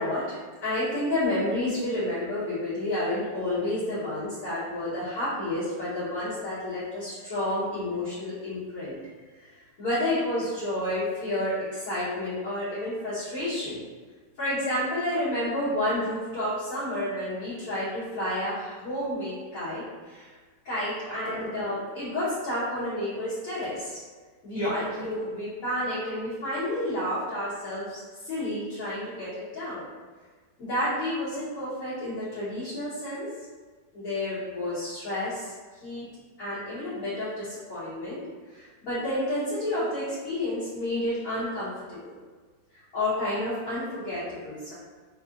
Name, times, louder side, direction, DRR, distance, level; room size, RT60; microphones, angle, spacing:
voice 1, 0.0-8.9 9.8-13.8 14.4-20.3 20.6-24.0 24.4-29.9 30.6-33.3 33.9-35.5 35.8-36.1 36.4-38.2 38.5-42.1 42.9-44.7, left 1 dB, 55° left, -14 dB, 1.5 m, -30 dB
4.5 x 2.4 x 2.5 m, 1.5 s
omnidirectional pair, 1.9 m